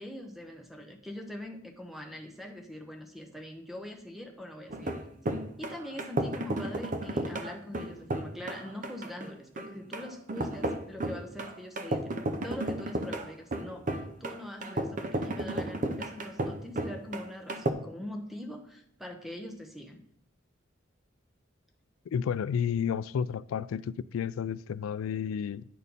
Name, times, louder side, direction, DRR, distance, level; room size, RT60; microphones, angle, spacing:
voice 1, 0.0-4.9 5.6-12.2 12.4-20.0, left 1 dB, ahead, 0.8 m, -43 dB
sound 1, 4.7-17.7, right 1 dB, 40° right, 0.6 m, -33 dB
voice 2, 22.1-25.6, left 7 dB, 80° left, 0.3 m, -31 dB
9.3 x 4.3 x 5.2 m
head